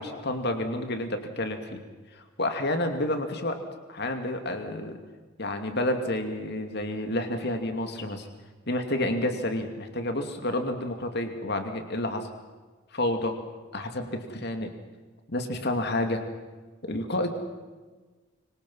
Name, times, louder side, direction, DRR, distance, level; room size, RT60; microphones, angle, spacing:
voice 1, 0.0-1.8 2.1-3.6 3.9-5.0 5.4-8.3 8.7-12.3 12.9-13.4 13.7-14.7 15.3-16.2 16.8-17.3, left 1 dB, 55° left, 6 dB, 2.6 m, -29 dB
26.0 x 24.5 x 5.7 m, 1.3 s
head